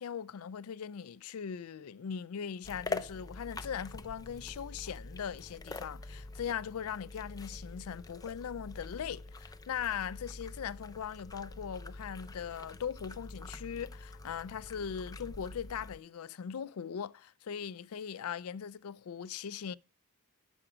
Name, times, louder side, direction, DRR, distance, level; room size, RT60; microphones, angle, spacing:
voice 1, 0.0-19.8, left 7 dB, 75° left, 0.4 m, -40 dB
sound 1, 2.6-16.0, left 3 dB, 15° left, 0.5 m, -45 dB
9.8 x 7.0 x 4.9 m
head